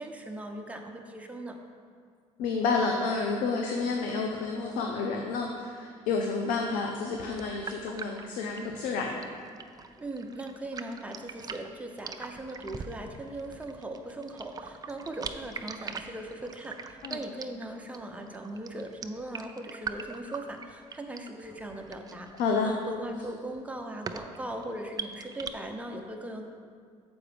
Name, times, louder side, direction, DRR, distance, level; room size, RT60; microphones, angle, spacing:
voice 1, 0.0-1.6 10.0-22.3 22.6-26.5, right 1 dB, 10° right, 3 dB, 0.8 m, -39 dB
voice 2, 2.4-9.2 17.0-17.2 22.4-22.7, left 4 dB, 85° left, 1 dB, 0.6 m, -30 dB
sound 1, 7.3-25.5, right 5 dB, 30° right, 0.4 m, -42 dB
7.0 x 4.8 x 5.0 m, 2.1 s
cardioid pair, 90°, 13 cm